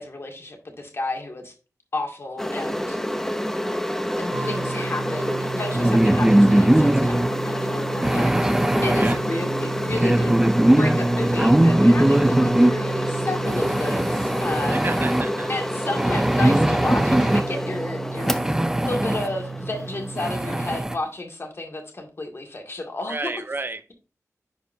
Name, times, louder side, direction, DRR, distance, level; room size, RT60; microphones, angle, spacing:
voice 1, 0.0-1.5 1.9-3.0 4.2-10.4 10.8-14.8 15.5-23.3, left 2 dB, 45° left, 2.0 m, -32 dB
sound 1, 2.4-20.8, equal, 5° left, 0.8 m, -28 dB
sound 2, 4.3-20.8, right 4 dB, 65° right, 1.5 m, -34 dB
sound 3, 5.7-7.3 8.0-9.2 9.9-12.7 13.5-15.2 16.0-17.5 18.2-19.3 19.7-19.8 20.2-21.0, right 1 dB, 10° right, 0.4 m, -20 dB
voice 2, 8.9-9.2 14.7-15.5 23.1-23.8, right 3 dB, 40° right, 0.7 m, -31 dB
11.0 x 4.5 x 2.7 m
wide cardioid pair, 95°, 6 cm